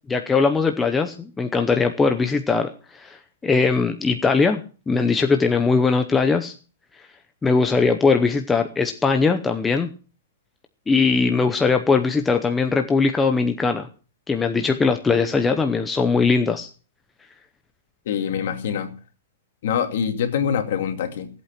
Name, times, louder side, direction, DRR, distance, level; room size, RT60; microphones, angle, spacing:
voice 1, 0.1-2.7 2.9-3.2 3.4-6.5 7.4-9.9 10.9-13.9 14.3-16.7, left 4 dB, 10° left, 5 dB, 0.7 m, -20 dB
voice 2, 18.1-18.9 19.6-21.3, left 8 dB, 55° left, 6 dB, 2.5 m, -24 dB
17.5 x 8.4 x 5.9 m, 0.38 s
hypercardioid pair, 170°, 0 cm